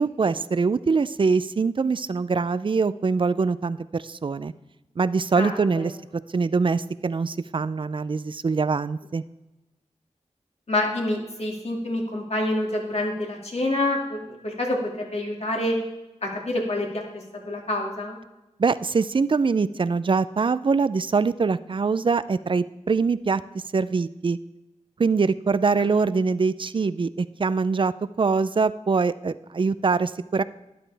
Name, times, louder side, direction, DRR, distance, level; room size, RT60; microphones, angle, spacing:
voice 1, 0.0-4.5 5.0-5.9 6.3-9.2 18.6-23.4 23.7-24.4 25.0-27.9 28.2-30.4, right 4 dB, 45° right, 16 dB, 0.4 m, -23 dB
voice 2, 5.4-5.9 10.7-15.7 16.2-17.0 17.5-18.2, left 1 dB, 60° left, 0 dB, 2.3 m, -27 dB
12.5 x 11.0 x 3.4 m, 1.0 s
wide cardioid pair, 100°, 12 cm